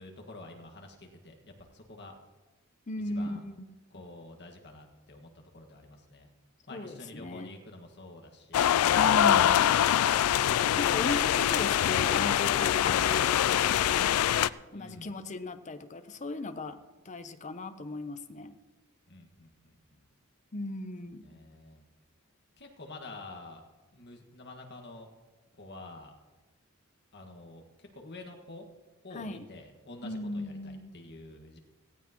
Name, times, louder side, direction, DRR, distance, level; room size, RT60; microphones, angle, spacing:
voice 1, 0.0-2.1 3.1-3.4 3.9-6.3 6.7-9.0 14.7-15.1 19.1-20.0 21.2-21.8 22.6-23.6 23.9-25.1 25.6-26.1 27.1-28.7 29.0-31.6, left 2 dB, 50° left, 3 dB, 1.7 m, -48 dB
voice 2, 2.9-3.6 6.7-7.5 9.0-9.7 10.8-14.1 14.7-16.8 17.0-18.6 20.5-21.2 29.1-29.5 30.0-30.9, left 2 dB, 35° left, 9 dB, 0.7 m, -37 dB
sound 1, 8.5-14.5, left 10 dB, 85° left, 0.3 m, -24 dB
17.5 x 15.5 x 3.0 m, 1.2 s
head